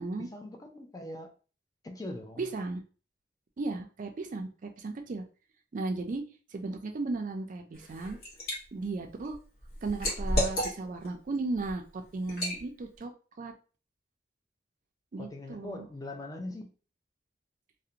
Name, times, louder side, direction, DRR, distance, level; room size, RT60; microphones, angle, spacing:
voice 1, 0.0-1.3 1.8-2.5 15.2-16.7, left 1 dB, 20° left, 3 dB, 0.4 m, -41 dB
voice 2, 2.4-2.8 3.6-5.2 5.7-6.2 6.5-8.2 8.7-9.4 9.8-13.1 13.4-13.5 15.1-15.9, right 3 dB, 45° right, 4 dB, 0.4 m, -35 dB
Liquid, 7.8-8.6 9.0-11.1 11.5-11.7 12.3-12.6, equal, 55° left, 1.0 m, -31 dB
2.5 x 2.1 x 2.8 m, 0.37 s
head